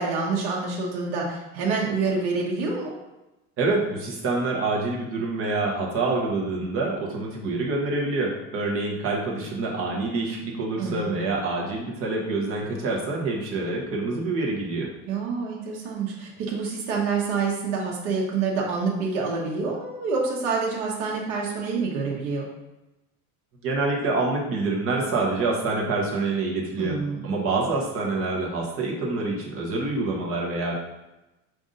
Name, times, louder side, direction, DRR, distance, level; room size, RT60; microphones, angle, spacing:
voice 1, 0.0-2.9 10.8-11.2 15.1-22.5 26.8-27.3, right 4 dB, 80° right, -3 dB, 1.0 m, -27 dB
voice 2, 3.6-14.9 23.6-27.0 27.2-30.7, right 3 dB, 40° right, -1 dB, 0.9 m, -26 dB
5.3 x 2.6 x 3.7 m, 1.0 s
cardioid pair, 175°, 36 cm